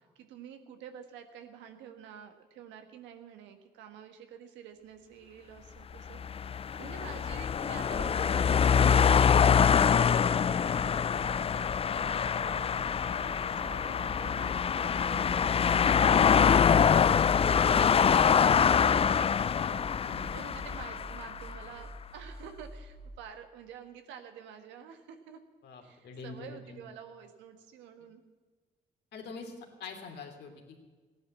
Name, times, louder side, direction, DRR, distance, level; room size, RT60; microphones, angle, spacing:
voice 1, 0.1-6.4 6.8-11.5 11.9-12.6 13.1-13.2 13.5-25.4 25.8-28.2, right 8 dB, 85° right, 7 dB, 1.5 m, -49 dB
sound 1, 6.1-21.5, left 7 dB, 30° left, 0.4 m, -25 dB
sound 2, 11.2-23.2, equal, 30° right, 1.1 m, -47 dB
voice 2, 20.0-20.4 25.6-26.8 29.1-29.5 29.8-30.5, left 4 dB, 70° left, 3 dB, 3.0 m, -44 dB
15.5 x 11.0 x 7.4 m, 1.4 s
supercardioid pair, 60°, 18 cm